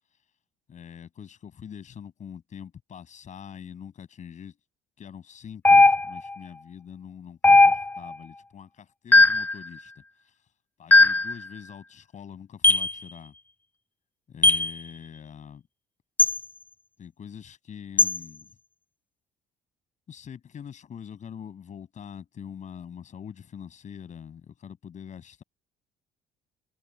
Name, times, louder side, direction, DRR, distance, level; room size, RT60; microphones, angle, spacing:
voice 1, 0.7-4.6 5.0-10.5 10.8-13.3 14.3-15.7 17.0-18.6 20.1-25.4, left 8 dB, 45° left, 7.1 m, -44 dB
sound 1, 5.7-6.3 7.4-8.1 9.1-9.5 10.9-11.3 12.6-12.9 14.4-14.7 16.2-16.4 18.0-18.2, left 2 dB, 10° left, 0.3 m, -17 dB
cardioid pair, 110°, 17 cm